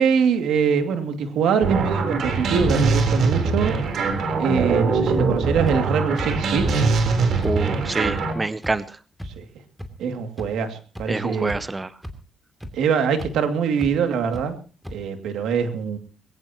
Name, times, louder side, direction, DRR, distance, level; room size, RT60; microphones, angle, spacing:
voice 1, 0.0-3.8 4.4-6.9 9.3-9.4 10.0-11.5 12.7-14.6 14.9-16.0, right 6 dB, 80° right, 6 dB, 2.4 m, -23 dB
sound 1, 1.6-8.3, right 4 dB, 65° right, 3.8 m, -22 dB
sound 2, 5.7-5.8 6.2-6.3 6.8-6.9 7.4-7.5 8.0-8.1 8.6-8.7 9.2-9.3 9.8-9.9 10.4-10.5 10.9-11.0 11.4-11.7 12.0-12.1 12.6-12.7 13.2-13.3 13.8-13.9 14.3-14.4 14.8-14.9, equal, ahead, 2.8 m, -33 dB
voice 2, 7.4-9.0 11.1-11.9, right 2 dB, 20° right, 15 dB, 0.7 m, -27 dB
21.0 x 18.0 x 3.0 m, 0.37 s
cardioid pair, 90°, 0 cm